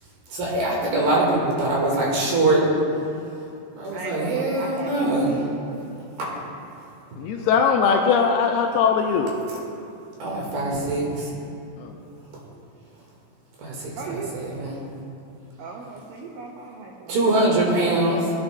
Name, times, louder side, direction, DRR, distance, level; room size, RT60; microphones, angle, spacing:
voice 1, 0.3-2.7 3.8-5.4 6.2-6.4 10.2-11.3 12.3-12.4 13.6-14.8 17.1-18.3, right 2 dB, 65° right, -4 dB, 3.3 m, -23 dB
voice 2, 3.9-6.2 14.0-14.3 15.6-18.1, right 4 dB, 85° right, 0 dB, 2.0 m, -37 dB
voice 3, 7.2-9.4 11.8-12.0, left 6 dB, 85° left, 1 dB, 2.4 m, -20 dB
17.0 x 10.5 x 2.3 m, 2.6 s
omnidirectional pair, 5.0 m